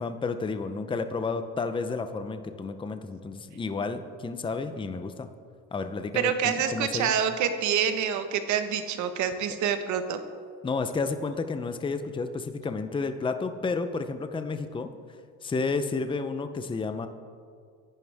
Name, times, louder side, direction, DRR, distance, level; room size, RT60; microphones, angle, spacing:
voice 1, 0.0-5.3 5.7-7.1 10.6-14.9 15.4-17.1, left 4 dB, 15° left, 8 dB, 0.7 m, -31 dB
voice 2, 6.1-10.2, right 8 dB, 65° right, 8 dB, 1.4 m, -27 dB
25.0 x 11.0 x 3.6 m, 2.2 s
cardioid pair, 120°, 32 cm